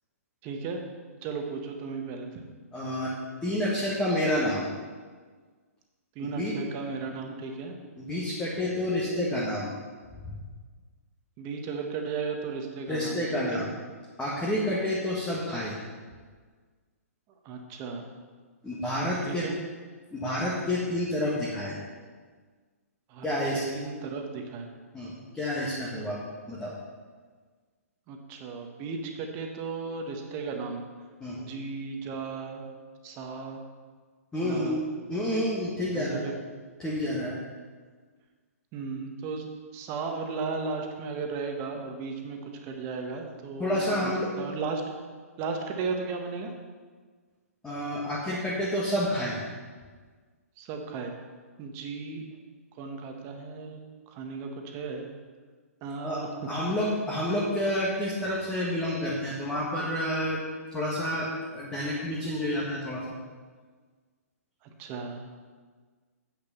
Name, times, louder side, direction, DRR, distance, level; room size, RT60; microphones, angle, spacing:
voice 1, 0.4-0.8 1.2-2.5 6.1-7.8 11.4-13.7 17.4-18.1 19.3-19.6 23.1-23.4 23.7-24.7 28.1-30.8 31.4-32.7 33.0-33.6 34.4-34.8 35.9-36.3 38.7-44.1 44.4-44.8 45.4-46.5 50.6-51.1 51.6-52.2 52.7-53.8 54.1-55.1 55.8-56.3 64.6-65.3, right 4 dB, 30° right, 3 dB, 1.4 m, -35 dB
voice 2, 2.7-3.1 3.4-4.7 6.4-6.5 8.0-9.8 12.9-13.7 14.2-15.8 18.6-19.5 20.1-21.7 23.2-23.6 24.9-26.2 26.5-26.7 31.2-31.4 34.3-34.8 35.1-36.3 36.8-37.4 43.6-44.3 47.6-49.4 56.0-56.2 56.5-60.4 60.7-63.0, left 1 dB, 10° left, -6 dB, 1.7 m, -29 dB
8.3 x 6.7 x 6.9 m, 1.5 s
hypercardioid pair, 130°, 8 cm